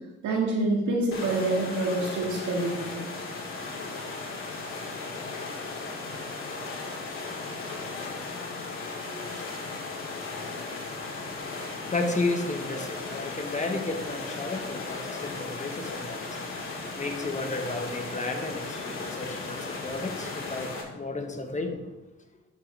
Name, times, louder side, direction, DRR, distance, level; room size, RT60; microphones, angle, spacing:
voice 1, 0.2-3.0, right 2 dB, 70° right, -3 dB, 2.0 m, -27 dB
sound 1, 1.1-20.8, left 3 dB, 45° left, 2.2 m, -36 dB
voice 2, 10.9-21.9, left 2 dB, 25° left, 5 dB, 1.3 m, -33 dB
11.0 x 6.4 x 3.4 m, 1.1 s
cardioid pair, 90°, 30 cm